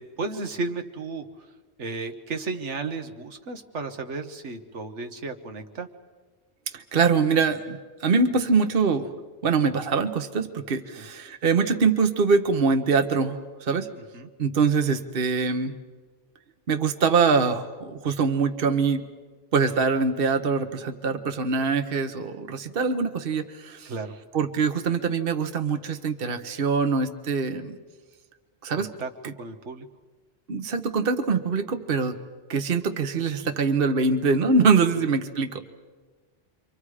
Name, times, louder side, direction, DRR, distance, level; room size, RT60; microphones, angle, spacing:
voice 1, 0.0-1.5 1.8-5.9 11.0-11.1 14.0-14.3 23.8-24.1 28.8-29.1 29.4-29.9 35.2-35.4, right 3 dB, 85° right, 6 dB, 1.6 m, -34 dB
voice 2, 6.7-9.1 9.4-13.9 14.4-15.7 16.7-19.0 19.5-23.9 24.3-27.8 28.6-28.9 29.2-29.3 30.5-32.2 32.5-35.7, right 5 dB, 55° right, 7 dB, 1.3 m, -23 dB
29.0 x 24.5 x 4.9 m, 1.4 s
omnidirectional pair, 1.2 m